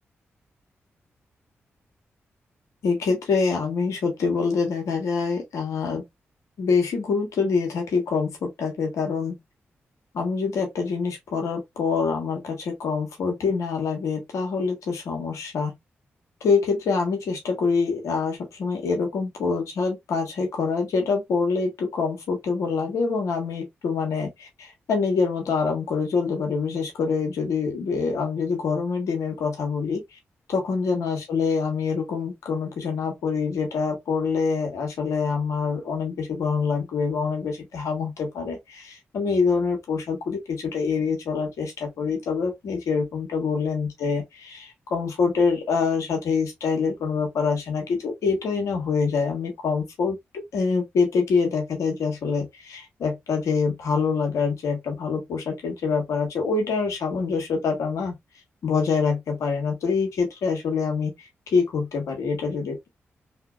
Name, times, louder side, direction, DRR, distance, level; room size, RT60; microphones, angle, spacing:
voice 1, 2.8-6.0 6.6-9.4 10.1-15.7 16.4-30.0 30.5-58.1 58.6-62.9, left 5 dB, 80° left, 1.2 m, -25 dB
2.8 x 2.7 x 2.3 m
supercardioid pair, 45°, 5 cm